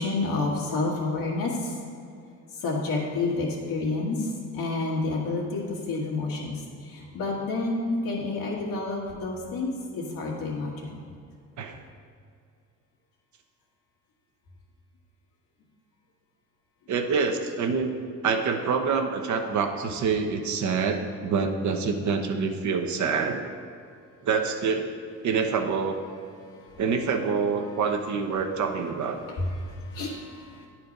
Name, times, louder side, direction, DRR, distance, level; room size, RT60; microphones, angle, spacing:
voice 1, 0.0-1.7 2.6-5.6 5.9-10.9 26.5-26.8 29.4-30.7, left 3 dB, 85° left, -2 dB, 1.8 m, -29 dB
voice 2, 16.9-17.9 18.2-23.4 24.2-24.9 25.2-26.0 26.8-29.2, right 5 dB, 65° right, 4 dB, 0.9 m, -26 dB
9.7 x 4.4 x 5.2 m, 2.3 s
cardioid pair, 90°, 32 cm